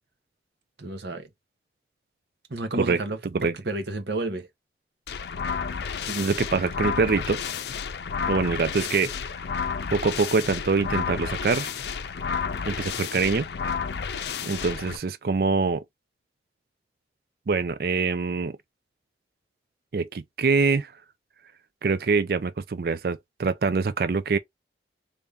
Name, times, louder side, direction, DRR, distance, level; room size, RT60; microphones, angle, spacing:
voice 1, 0.8-1.3 2.5-4.5, right 2 dB, 70° right, 1.0 m, -31 dB
sound 1, 5.1-15.0, left 6 dB, 70° left, 0.5 m, -31 dB
voice 2, 6.1-7.4 8.3-9.1 9.9-11.7 12.6-13.5 14.4-15.8 17.5-18.6 19.9-20.9 21.8-24.4, right 4 dB, 55° right, 0.4 m, -24 dB
3.4 x 2.7 x 3.4 m
head